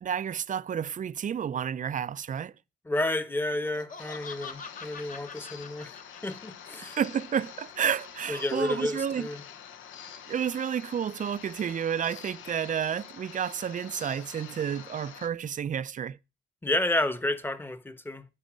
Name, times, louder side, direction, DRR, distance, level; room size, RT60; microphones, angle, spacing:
voice 1, 0.0-2.5 6.8-9.3 10.3-16.2, right 8 dB, 40° right, 0.5 m, -31 dB
voice 2, 2.9-6.0 6.2-6.9 8.3-9.4 16.6-18.3, left 1 dB, 10° left, 1.0 m, -30 dB
Laughter, 3.5-6.7, left 5 dB, 40° left, 1.3 m, -44 dB
sound 1, 4.0-15.3, left 8 dB, 80° left, 1.1 m, -46 dB
9.8 x 4.8 x 7.4 m
cardioid pair, 90°, 20 cm